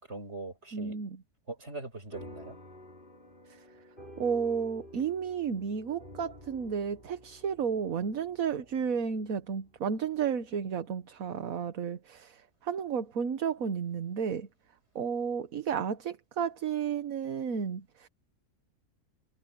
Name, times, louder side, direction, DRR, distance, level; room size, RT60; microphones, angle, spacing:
voice 1, 0.1-1.0 1.5-2.6, right 2 dB, 45° right, 6.1 m, -41 dB
voice 2, 0.7-1.2 3.5-3.7 4.2-14.5 14.9-18.1, right 7 dB, 70° right, 1.5 m, -32 dB
sound 1, 2.1-10.9, left 1 dB, 35° left, 5.8 m, -51 dB
omnidirectional pair, 1.5 m